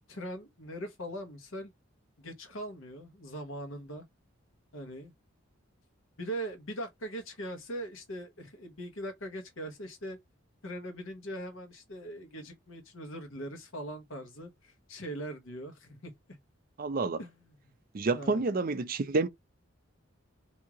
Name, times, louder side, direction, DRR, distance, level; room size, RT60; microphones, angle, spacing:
voice 1, 0.1-1.7 2.2-4.0 4.7-5.1 6.2-10.2 10.6-16.4 17.2-17.3 17.6-17.7 18.1-18.4, right 1 dB, 70° left, 1.1 m, -41 dB
voice 2, 16.8-17.2 17.9-19.3, right 3 dB, 45° right, 0.5 m, -29 dB
3.0 x 2.7 x 3.6 m
head